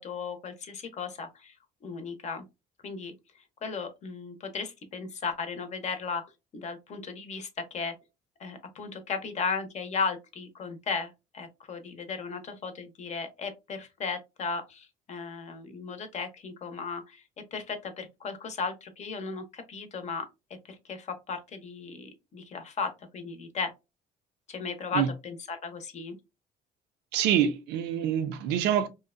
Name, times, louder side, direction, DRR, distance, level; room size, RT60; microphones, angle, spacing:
voice 1, 0.0-1.5 1.8-2.4 2.8-3.1 3.6-6.2 6.5-7.9 8.4-17.2 17.5-20.3 20.7-23.7 24.5-26.1, left 5 dB, 45° left, 0.6 m, -35 dB
voice 2, 27.1-28.9, right 9 dB, 90° right, 0.5 m, -26 dB
2.7 x 2.1 x 2.3 m
cardioid pair, 110°, 17 cm